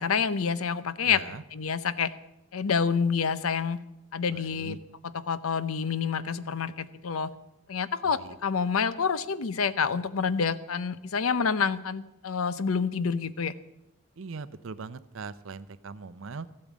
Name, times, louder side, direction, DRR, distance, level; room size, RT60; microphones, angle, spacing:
voice 1, 0.0-2.1 2.5-3.8 4.1-4.8 5.1-7.3 7.7-13.5, left 6 dB, 85° left, 15 dB, 0.6 m, -28 dB
voice 2, 1.0-1.4 4.3-4.8 8.0-8.3 14.2-16.5, right 4 dB, 70° right, 15 dB, 0.6 m, -40 dB
14.5 x 8.6 x 7.3 m, 0.88 s
head